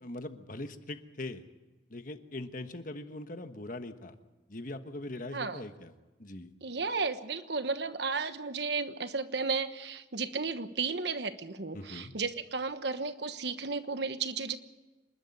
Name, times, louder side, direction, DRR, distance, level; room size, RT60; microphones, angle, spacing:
voice 1, 0.0-1.4 1.9-4.2 4.5-5.9 6.2-6.5 11.7-12.1, left 2 dB, 45° left, 8 dB, 1.3 m, -41 dB
voice 2, 5.3-5.6 6.6-14.6, right 4 dB, 60° right, 10 dB, 1.2 m, -34 dB
27.0 x 12.0 x 9.7 m, 1.1 s
head